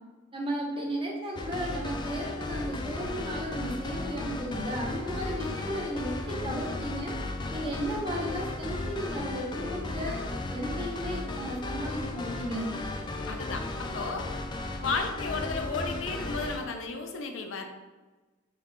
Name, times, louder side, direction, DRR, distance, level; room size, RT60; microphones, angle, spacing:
voice 1, 0.3-7.1 7.5-10.2 10.5-12.7, equal, 30° right, -2 dB, 0.9 m, -34 dB
sound 1, 1.3-16.6, left 2 dB, 25° left, 0.3 m, -35 dB
voice 2, 13.3-14.3 14.8-17.7, left 4 dB, 80° left, 4 dB, 0.5 m, -33 dB
3.8 x 3.5 x 3.2 m, 1.2 s
head